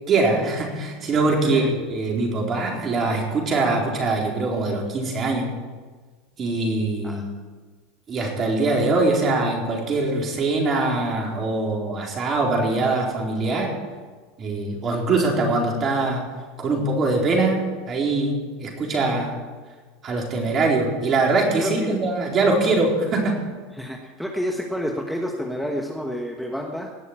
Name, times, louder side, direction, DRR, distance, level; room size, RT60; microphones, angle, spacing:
voice 1, 0.1-5.5 6.4-7.3 8.1-13.7 14.4-16.2 16.6-19.3 20.0-23.4, right 3 dB, 35° right, 0 dB, 4.3 m, -22 dB
voice 2, 21.6-22.0 23.7-27.0, equal, ahead, 1 dB, 1.4 m, -29 dB
18.5 x 6.5 x 8.8 m, 1.4 s
supercardioid pair, 110°, 0 cm